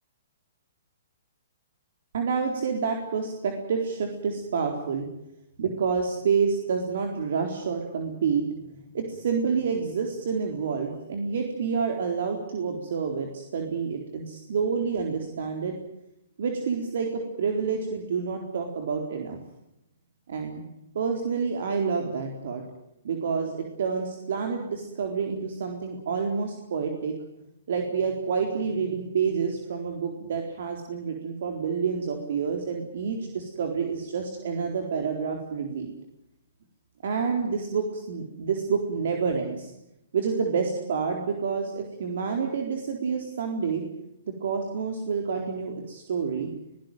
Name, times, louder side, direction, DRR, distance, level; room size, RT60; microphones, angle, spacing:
voice 1, 2.1-5.1 5.6-8.4 8.9-15.8 16.4-19.4 20.3-20.7 20.9-22.6 23.0-27.1 27.7-35.9 37.0-39.7 40.1-43.8 44.4-46.5, right 5 dB, 65° right, 3 dB, 4.0 m, -28 dB
22.5 x 18.0 x 9.3 m, 0.86 s
hypercardioid pair, 140°, 0 cm